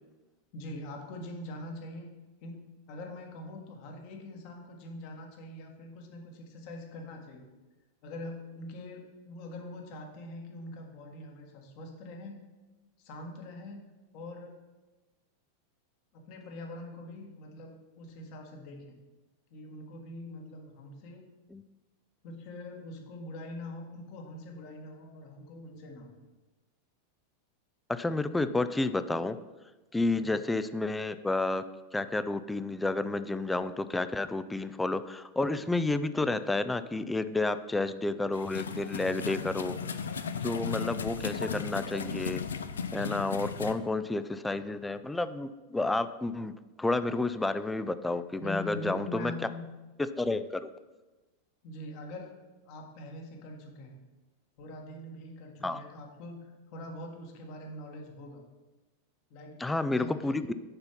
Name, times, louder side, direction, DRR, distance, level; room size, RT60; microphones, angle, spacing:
voice 1, 0.5-2.1 2.4-2.6 2.9-7.5 8.0-12.4 13.0-13.8 14.1-14.5 16.1-18.9 19.5-21.3 22.2-26.2 30.1-30.3 48.4-49.6 51.6-52.3 52.6-54.0 54.6-58.4 59.3-60.4, left 1 dB, 45° left, 2 dB, 1.6 m, -43 dB
voice 2, 27.9-29.4 29.9-31.6 31.9-39.8 40.4-42.4 42.9-49.3 50.0-50.7 55.6-55.8 59.6-60.5, left 2 dB, 10° left, 12 dB, 0.4 m, -30 dB
sound 1, 38.3-43.7, left 6 dB, 70° left, 0.5 m, -36 dB
6.7 x 5.5 x 5.8 m, 1.1 s
figure-of-eight pair, 90°, 0 cm